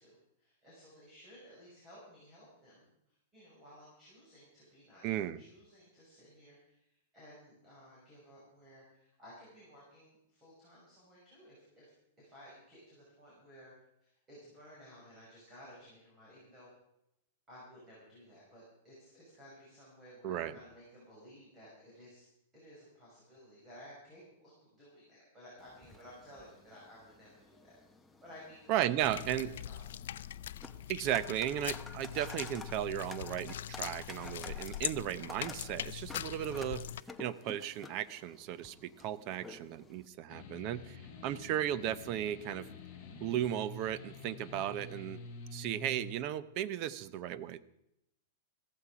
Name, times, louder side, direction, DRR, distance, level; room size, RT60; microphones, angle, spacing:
voice 1, 0.0-13.7 14.0-16.7 17.5-22.2 22.5-27.8 28.2-28.8 29.1-29.2 29.7-30.2 40.7-41.0, equal, 15° right, -7 dB, 5.9 m, -56 dB
voice 2, 5.0-5.4 20.2-20.6 28.7-29.5 30.9-36.8 37.2-42.6 43.2-45.2 45.5-47.6, right 11 dB, 35° right, 16 dB, 0.7 m, -35 dB
sound 1, 25.6-40.1, left 3 dB, 5° left, 0.9 m, -52 dB
sound 2, 29.0-37.0, left 11 dB, 75° left, 0.4 m, -42 dB
sound 3, 40.3-46.1, left 3 dB, 25° left, 4.2 m, -48 dB
15.5 x 14.0 x 4.9 m, 0.82 s
supercardioid pair, 160°, 0 cm